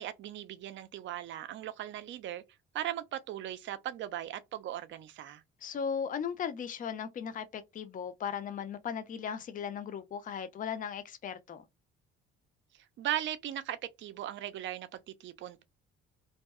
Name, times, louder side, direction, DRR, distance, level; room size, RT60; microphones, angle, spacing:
voice 1, 0.0-2.4 2.7-5.4 13.0-15.6, right 12 dB, 35° right, 0.4 m, -38 dB
voice 2, 5.6-11.7, left 7 dB, 25° left, 0.5 m, -37 dB
2.5 x 2.3 x 2.3 m
figure-of-eight pair, 50°, 33 cm